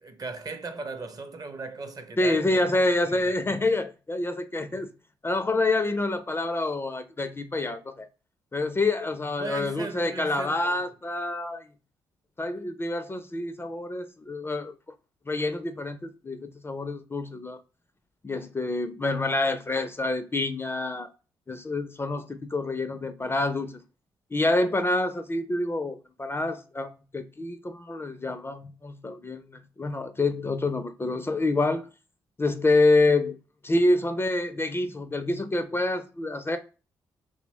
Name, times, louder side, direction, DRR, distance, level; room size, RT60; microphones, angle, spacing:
voice 1, 0.0-2.7 3.0-3.6 4.7-4.8 9.4-10.8, right 3 dB, 35° right, 0.6 m, -38 dB
voice 2, 2.2-4.9 5.2-8.1 8.5-11.7 12.4-14.7 15.3-17.6 18.2-21.1 21.5-23.8 24.3-31.9 32.4-33.4 33.6-36.6, left 2 dB, 20° left, 0.4 m, -27 dB
2.9 x 2.0 x 2.7 m
hypercardioid pair, 45°, 11 cm